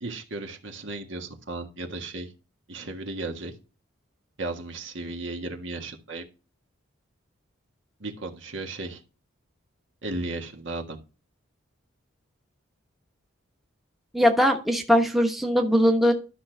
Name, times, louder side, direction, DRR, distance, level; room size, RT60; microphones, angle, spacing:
voice 1, 0.0-2.3 2.7-3.5 4.4-6.3 8.0-9.0 10.0-11.0, right 2 dB, 65° right, 4 dB, 1.7 m, -35 dB
voice 2, 14.1-16.1, equal, ahead, 2 dB, 1.0 m, -20 dB
12.5 x 6.1 x 3.4 m, 0.32 s
head